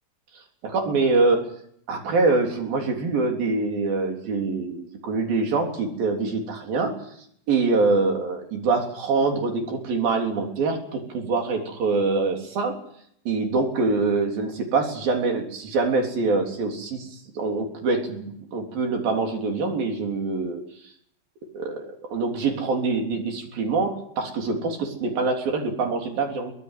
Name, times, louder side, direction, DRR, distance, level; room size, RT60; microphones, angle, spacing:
voice 1, 0.6-1.5 1.9-7.0 7.5-12.8 13.3-17.1 17.4-20.6 21.5-26.5, right 3 dB, 80° right, 2 dB, 5.4 m, -24 dB
24.0 x 17.0 x 9.2 m, 0.69 s
omnidirectional pair, 4.1 m